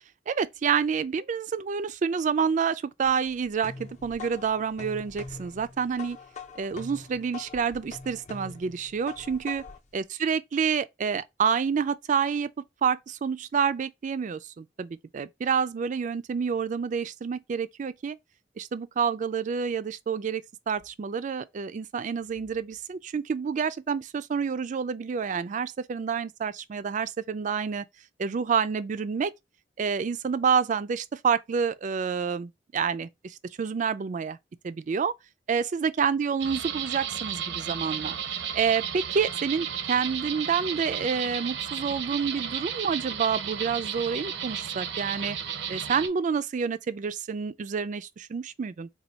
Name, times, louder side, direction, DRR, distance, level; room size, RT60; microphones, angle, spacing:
voice 1, 0.3-6.2 6.6-9.6 9.9-12.5 12.8-18.2 18.6-27.8 28.2-29.3 29.8-34.4 34.6-35.1 35.5-38.1 38.5-45.4 45.7-48.9, right 6 dB, 45° right, 0.3 m, -28 dB
sound 1, 3.0-9.9, left 4 dB, 40° left, 0.7 m, -43 dB
sound 2, 36.4-46.1, right 8 dB, 80° right, 0.7 m, -33 dB
4.3 x 2.3 x 4.0 m
head